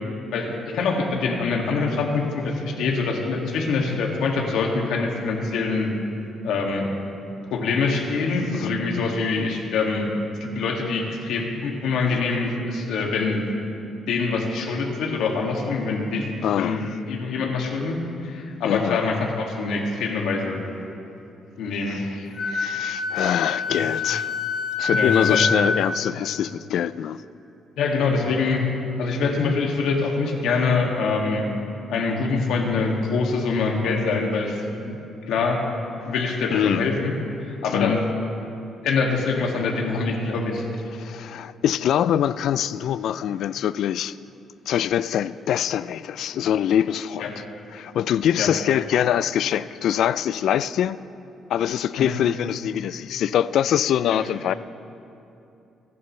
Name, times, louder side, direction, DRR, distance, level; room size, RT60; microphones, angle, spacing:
voice 1, 0.3-5.9 6.4-6.9 7.5-10.1 10.4-13.4 14.1-16.3 16.6-16.8 17.1-18.0 18.2-20.6 21.6-22.0 23.7-23.8 24.9-25.4 27.8-28.6 29.0-31.5 31.9-34.6 34.9-35.0 35.3-35.6 36.1-37.1 37.6-38.0 38.8-40.6 47.2-47.4 48.4-48.5 52.0-52.1 54.1-54.2, left 4 dB, 85° left, 2.2 m, -24 dB
voice 2, 16.4-16.9 18.6-19.0 21.9-24.3 24.8-27.2 36.5-36.9 37.7-38.0 40.9-44.2 44.7-47.4 47.7-51.0 51.5-54.5, left 10 dB, 65° left, 0.3 m, -24 dB
Wind instrument woodwind instrument, 22.4-25.9, left 5 dB, 30° left, 2.0 m, -26 dB
27.0 x 11.0 x 3.3 m
cardioid pair, 170°, 0 cm